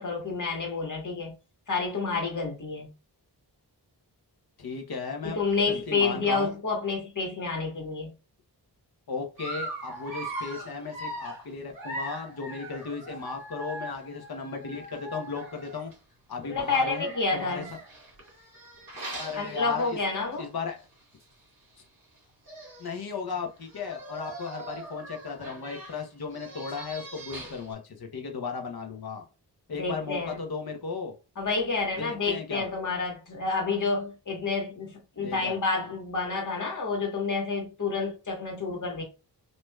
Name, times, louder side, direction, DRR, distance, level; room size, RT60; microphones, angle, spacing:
voice 1, 0.0-1.3 1.7-2.9 5.2-8.1 16.4-17.7 19.4-20.5 29.8-30.4 31.4-39.0, left 4 dB, 45° left, 1.6 m, -29 dB
voice 2, 4.6-5.4 5.7-6.5 9.1-15.9 16.3-17.6 19.2-20.0 20.4-20.8 22.8-29.2 29.7-31.1 32.0-32.7 35.2-35.6, left 5 dB, 60° left, 1.0 m, -35 dB
Dog, 9.4-16.0 16.7-20.3 20.8-20.9 21.2-21.3 22.2-22.3 22.4-23.0 23.6-27.7, right 1 dB, 55° right, 2.1 m, -41 dB
6.3 x 2.9 x 2.3 m
wide cardioid pair, 130°, 41 cm